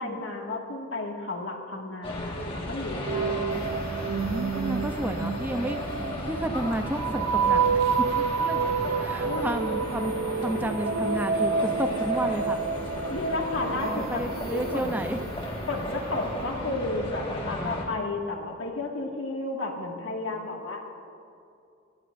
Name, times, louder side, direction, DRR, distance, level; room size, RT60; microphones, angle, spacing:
voice 1, 0.0-3.7 9.3-9.5 13.1-14.2 14.5-15.1 15.7-20.8, left 2 dB, 65° left, 0 dB, 2.0 m, -32 dB
sound 1, 2.0-17.9, left 1 dB, 25° left, 1.7 m, -35 dB
sound 2, 3.1-15.8, right 5 dB, 75° right, 0.5 m, -29 dB
voice 2, 4.2-5.8 6.2-7.8 8.2-8.7 9.0-12.6 13.8-15.2 17.4-18.1, right 1 dB, 10° right, 6 dB, 0.6 m, -32 dB
23.0 x 17.5 x 2.6 m, 2.5 s
head